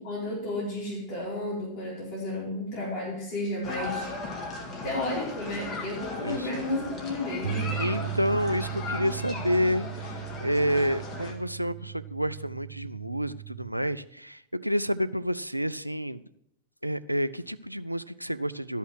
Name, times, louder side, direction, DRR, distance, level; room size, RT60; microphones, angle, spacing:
voice 1, 0.0-4.1 4.8-7.8, left 1 dB, 45° left, -5 dB, 4.2 m, -32 dB
sound 1, 3.6-11.3, left 3 dB, 30° left, 2.0 m, -37 dB
Bass guitar, 7.4-13.7, right 10 dB, 65° right, 1.9 m, -37 dB
voice 2, 7.8-9.9 10.4-16.2 16.8-18.8, equal, 90° right, 14 dB, 0.3 m, -29 dB
12.5 x 5.5 x 6.2 m, 0.75 s
figure-of-eight pair, 90°, 0 cm